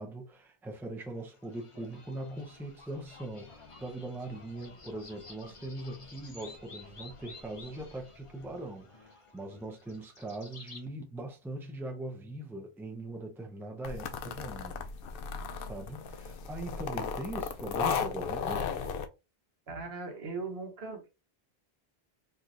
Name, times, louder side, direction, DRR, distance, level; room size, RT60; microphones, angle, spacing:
voice 1, 0.0-14.9 15.5-18.7, right 1 dB, 5° right, 0.5 m, -41 dB
sound 1, 1.2-10.8, left 3 dB, 35° left, 0.8 m, -52 dB
sound 2, 13.8-19.1, left 6 dB, 65° left, 0.7 m, -35 dB
voice 2, 19.7-21.1, right 3 dB, 75° right, 1.3 m, -39 dB
4.6 x 2.7 x 2.5 m
omnidirectional pair, 1.1 m